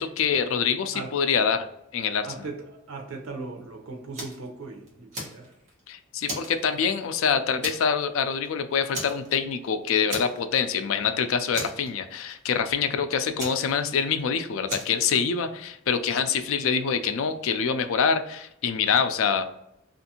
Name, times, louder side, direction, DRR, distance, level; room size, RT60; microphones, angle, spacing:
voice 1, 0.0-1.7 1.9-2.3 5.9-19.4, left 6 dB, 70° left, 9 dB, 0.4 m, -25 dB
voice 2, 2.2-5.5, right 3 dB, 80° right, 3 dB, 0.7 m, -38 dB
Fire, 4.1-4.5 4.9-5.8 6.2-7.2 7.6-8.0 8.3-8.5 8.9-9.7 10.1-10.7 10.9-11.0 11.5-12.3 13.4-14.2 14.7-15.0, right 1 dB, 35° right, 1.1 m, -35 dB
2.6 x 2.5 x 2.7 m, 0.81 s
head